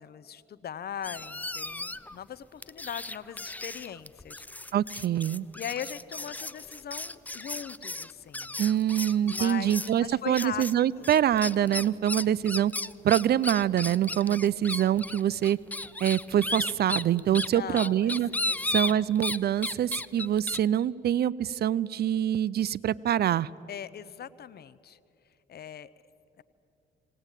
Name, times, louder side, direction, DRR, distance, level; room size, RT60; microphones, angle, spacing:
voice 1, 0.0-4.8 5.5-8.6 9.2-10.6 11.0-11.2 17.5-18.2 18.4-19.1 23.7-25.0 25.5-25.9 26.4-26.5, left 9 dB, 55° left, 17 dB, 0.7 m, -40 dB
Chillidos Animal, 1.0-2.2 2.6-10.0 10.3-10.7 11.0-19.4 19.6-20.6, left 2 dB, 10° left, 0.4 m, -34 dB
voice 2, 4.7-5.5 8.6-12.7 13.0-15.6 16.0-18.3 18.7-23.5, right 10 dB, 55° right, 21 dB, 0.4 m, -25 dB
19.0 x 18.5 x 9.0 m, 2.7 s
cardioid pair, 90°, 20 cm